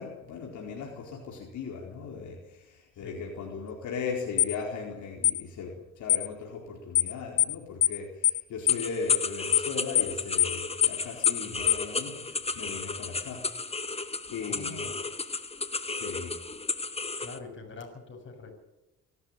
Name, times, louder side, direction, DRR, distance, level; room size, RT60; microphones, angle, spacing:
voice 1, 0.0-13.4 14.3-14.9 15.9-16.4, left 5 dB, 75° left, -1 dB, 4.4 m, -38 dB
sound 1, 4.4-4.5 5.2-5.4 6.1-6.3 6.9-7.1 7.4-7.5 7.8-8.0 8.2-8.4 8.7-8.8 9.1-9.3 9.5-9.7 9.9-10.1 10.4-10.5 10.8-11.0 11.2-11.4 11.7-11.8, left 13 dB, 55° left, 0.7 m, -23 dB
sound 2, 8.7-17.4, left 3 dB, 20° left, 1.4 m, -34 dB
voice 2, 14.4-15.0 17.2-18.5, left 4 dB, 40° left, 3 dB, 7.1 m, -44 dB
24.5 x 13.0 x 9.0 m, 0.97 s
cardioid pair, 90°, 30 cm